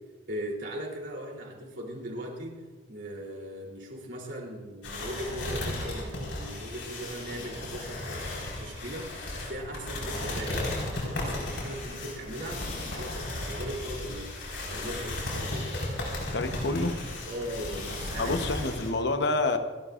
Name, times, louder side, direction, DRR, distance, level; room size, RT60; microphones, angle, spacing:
voice 1, 0.3-2.6 2.9-10.7 11.0-12.6 12.9-14.3 14.7-15.7 17.3-18.4, right 1 dB, 70° right, -2 dB, 3.3 m, -39 dB
sound 1, 4.8-18.9, left 1 dB, 80° left, 4.8 m, -35 dB
voice 2, 16.3-17.0 18.2-19.6, left 2 dB, 65° left, 7 dB, 1.0 m, -28 dB
28.5 x 12.0 x 2.5 m, 1.4 s
head